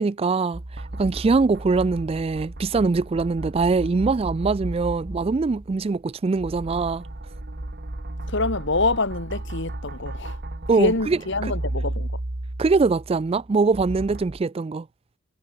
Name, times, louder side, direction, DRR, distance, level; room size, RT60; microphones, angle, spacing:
voice 1, 0.0-7.0 10.7-11.2 12.6-14.9, right 4 dB, 30° right, 0.3 m, -22 dB
sound 1, 0.5-6.0 6.3-14.4, right 1 dB, 50° right, 1.4 m, -34 dB
voice 2, 8.2-10.4 10.7-12.2, left 3 dB, 60° left, 2.6 m, -26 dB
head